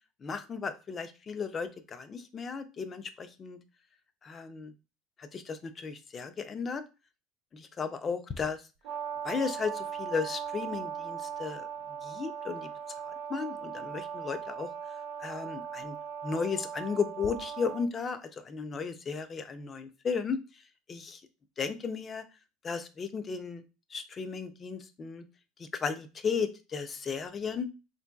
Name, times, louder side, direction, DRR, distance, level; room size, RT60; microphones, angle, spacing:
voice 1, 0.2-3.6 4.2-4.7 5.2-6.8 7.5-8.6 9.2-11.7 12.0-12.7 13.0-14.7 15.2-16.0 16.2-20.4 20.9-21.2 21.6-22.2 22.6-23.6 23.9-25.3 25.6-27.7, left 5 dB, 20° left, 10 dB, 0.3 m, -35 dB
Brass instrument, 8.8-17.9, right 7 dB, 55° right, 0.6 m, -39 dB
3.6 x 2.6 x 2.2 m, 0.29 s
cardioid pair, 155°, 0 cm